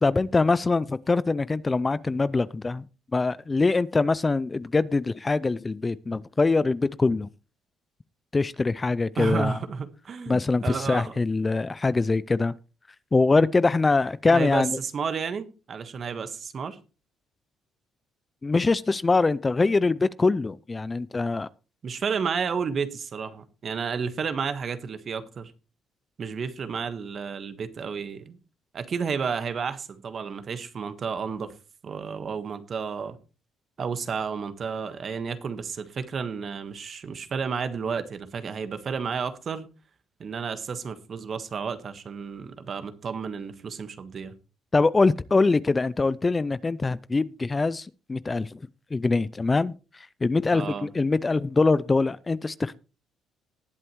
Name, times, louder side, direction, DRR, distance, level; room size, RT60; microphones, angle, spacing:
voice 1, 0.0-2.8 3.1-7.3 8.3-9.6 10.3-12.5 13.1-14.8 18.4-21.5 44.7-48.6 48.9-52.8, left 3 dB, 25° left, 0.4 m, -23 dB
voice 2, 9.2-11.1 14.3-16.8 21.8-25.5 26.2-28.4 28.7-31.5 31.8-33.2 33.8-39.7 40.2-44.4 50.5-50.9, right 6 dB, 50° right, 1.4 m, -31 dB
19.0 x 7.7 x 3.1 m
supercardioid pair, 75°, 0 cm